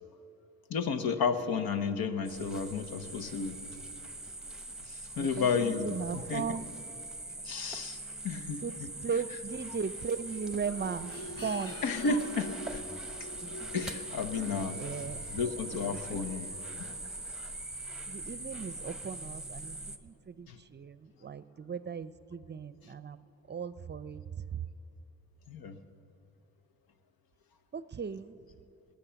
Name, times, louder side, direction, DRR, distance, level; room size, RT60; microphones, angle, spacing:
voice 1, 0.7-3.6 4.9-6.6 7.4-8.9 11.8-12.8 13.7-14.8 15.3-16.5 20.5-20.6 25.5-25.8, left 5 dB, 80° left, 10 dB, 1.0 m, -32 dB
sound 1, 2.2-20.0, right 2 dB, ahead, 0.9 m, -42 dB
voice 2, 5.2-6.7 8.6-8.7 9.0-11.8 14.7-15.2 15.9-16.5 16.8-17.0 18.1-23.2 23.5-24.7 27.7-28.3, right 6 dB, 30° right, 15 dB, 0.5 m, -37 dB
sound 2, 10.6-18.1 18.6-18.7, left 2 dB, 40° left, 1.0 m, -46 dB
19.0 x 9.2 x 7.0 m, 2.7 s
cardioid pair, 85°, 35 cm